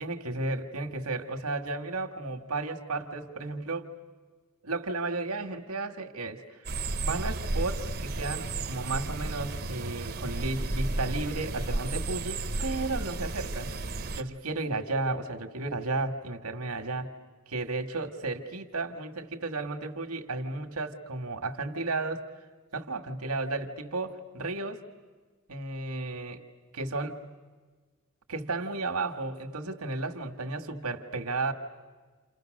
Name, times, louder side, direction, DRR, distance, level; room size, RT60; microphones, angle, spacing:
voice 1, 0.0-3.9 4.6-6.7 7.0-13.7 14.2-17.1 17.5-22.3 22.7-24.8 25.5-26.4 26.7-27.2 28.3-31.5, right 3 dB, 80° right, 4 dB, 1.9 m, -33 dB
sound 1, 6.7-14.2, right 2 dB, 45° right, 1.0 m, -33 dB
29.5 x 29.0 x 6.6 m, 1.4 s
head